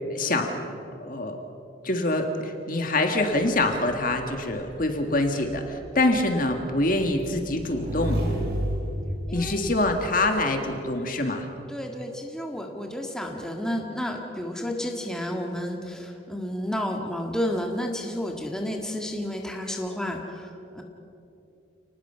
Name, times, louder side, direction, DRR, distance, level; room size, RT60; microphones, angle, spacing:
voice 1, 0.1-0.6 1.0-1.4 1.8-8.2 9.3-11.5, left 2 dB, 45° left, 5 dB, 1.8 m, -25 dB
Motorcycle / Engine, 3.2-10.3, equal, 55° right, 6.5 m, -33 dB
voice 2, 11.7-20.8, left 1 dB, 5° left, 1 dB, 1.8 m, -31 dB
29.5 x 19.5 x 5.7 m, 2.7 s
head